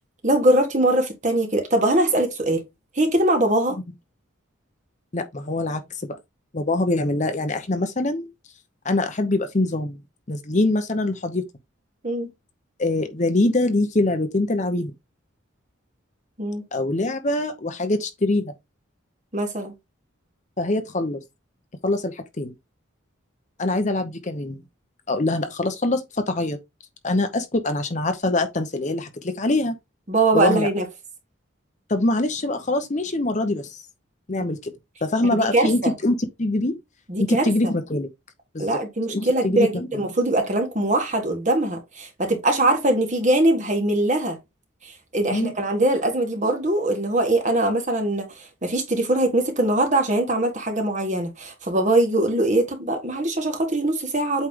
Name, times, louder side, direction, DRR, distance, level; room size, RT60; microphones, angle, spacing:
voice 1, 0.2-2.6 3.0-3.8 12.0-12.3 16.4-16.6 19.3-19.7 30.1-30.8 35.3-35.9 37.1-37.4 38.6-44.4 45.1-54.5, right 1 dB, 35° right, 1.6 m, -22 dB
voice 2, 5.1-6.1 6.5-8.3 8.8-10.0 10.3-11.4 12.8-14.9 16.7-18.5 20.6-21.2 21.8-22.5 23.6-24.6 25.1-26.6 27.0-29.7 30.3-30.7 31.9-33.8 34.3-34.7 35.0-36.8 37.2-38.1 38.5-38.7 39.1-39.9 45.3-45.5, left 2 dB, 35° left, 0.8 m, -24 dB
8.2 x 3.3 x 3.7 m
head